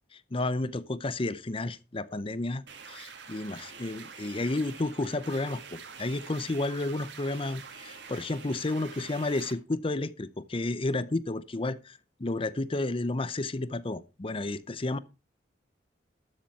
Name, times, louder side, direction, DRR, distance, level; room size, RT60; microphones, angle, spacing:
voice 1, 0.1-2.6 2.9-15.0, left 2 dB, 30° left, 0.7 m, -32 dB
sound 1, 2.7-9.5, right 5 dB, 80° right, 2.1 m, -46 dB
12.5 x 7.4 x 4.4 m
head